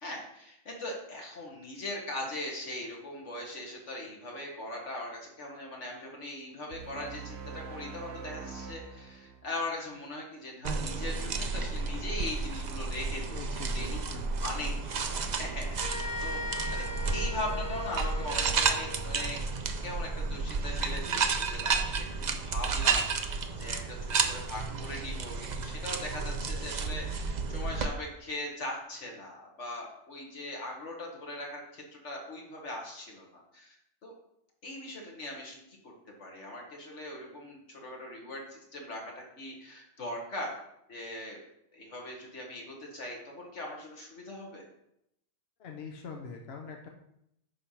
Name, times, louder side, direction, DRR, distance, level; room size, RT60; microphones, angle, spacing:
voice 1, 0.0-14.0 14.4-16.4 16.7-16.8 17.1-19.4 19.8-33.8 34.0-34.1 34.6-35.6 36.2-40.6 40.9-41.4 41.7-44.6, left 1 dB, 75° left, 0 dB, 2.0 m, -40 dB
sound 1, 6.7-10.0, right 5 dB, 65° right, 0.9 m, -44 dB
sound 2, 10.6-27.9, right 4 dB, 50° right, 0.6 m, -32 dB
voice 2, 13.3-14.2 45.6-46.9, left 5 dB, 60° left, 1 dB, 1.0 m, -43 dB
sound 3, 15.8-19.5, left 3 dB, 15° left, 2.0 m, -39 dB
9.9 x 3.4 x 5.7 m, 0.80 s
omnidirectional pair, 1.2 m